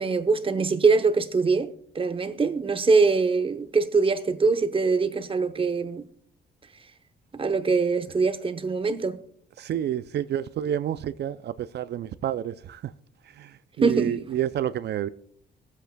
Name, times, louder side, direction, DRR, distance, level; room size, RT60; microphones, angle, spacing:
voice 1, 0.0-6.0 7.4-9.2 13.8-14.2, right 4 dB, 25° right, 0.8 m, -23 dB
voice 2, 9.6-12.9 13.4-15.1, right 10 dB, 60° right, 0.4 m, -29 dB
22.0 x 8.0 x 2.3 m
cardioid pair, 90°, 20 cm